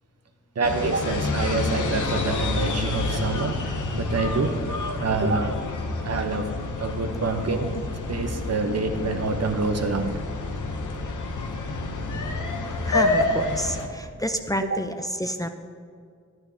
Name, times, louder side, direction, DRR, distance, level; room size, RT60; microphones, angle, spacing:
sound 1, 0.6-13.9, left 2 dB, 85° left, 0.8 m, -28 dB
voice 1, 0.6-4.6 5.0-5.6 6.0-6.5 6.8-10.2 14.7-14.8, right 3 dB, 55° right, 6 dB, 0.9 m, -27 dB
voice 2, 12.8-15.5, equal, 10° left, 6 dB, 0.5 m, -29 dB
11.5 x 9.1 x 2.8 m, 2.2 s
cardioid pair, 55°, 30 cm